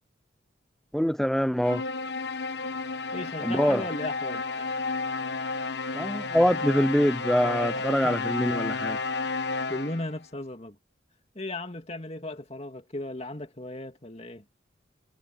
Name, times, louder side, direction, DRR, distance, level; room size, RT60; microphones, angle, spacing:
voice 1, 0.9-1.8 3.4-3.8 5.9-9.0, equal, ahead, 0.4 m, -24 dB
sound 1, 1.6-10.2, left 3 dB, 60° left, 1.1 m, -32 dB
voice 2, 3.1-4.8 7.7-8.2 9.7-10.8 11.3-14.4, left 1 dB, 30° left, 2.6 m, -36 dB
head